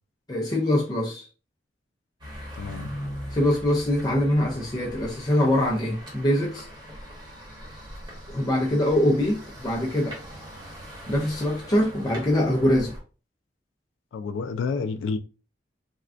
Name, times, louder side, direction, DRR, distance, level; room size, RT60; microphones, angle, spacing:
voice 1, 0.3-1.2 3.3-6.7 8.3-10.2 11.1-12.9, left 1 dB, 20° left, 0.4 m, -23 dB
sound 1, 2.2-13.0, equal, 25° right, 1.0 m, -41 dB
voice 2, 2.6-2.9 14.1-15.2, left 4 dB, 90° left, 0.3 m, -29 dB
3.4 x 2.2 x 2.4 m
head